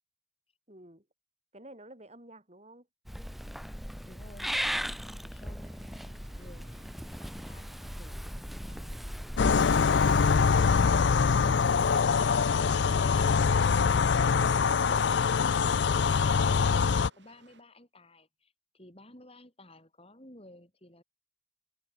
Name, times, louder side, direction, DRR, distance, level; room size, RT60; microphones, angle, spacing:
voice 1, 0.7-1.1 1.5-2.9, right 1 dB, 30° right, 5.4 m, -52 dB
Purr / Meow, 3.1-12.0, equal, ahead, 1.2 m, -38 dB
voice 2, 4.0-7.7 8.0-9.0 15.7-21.0, left 1 dB, 30° left, 6.3 m, -53 dB
sound 1, 5.6-17.6, right 3 dB, 60° right, 7.5 m, -62 dB
sound 2, 9.4-17.1, left 5 dB, 55° left, 0.4 m, -24 dB
head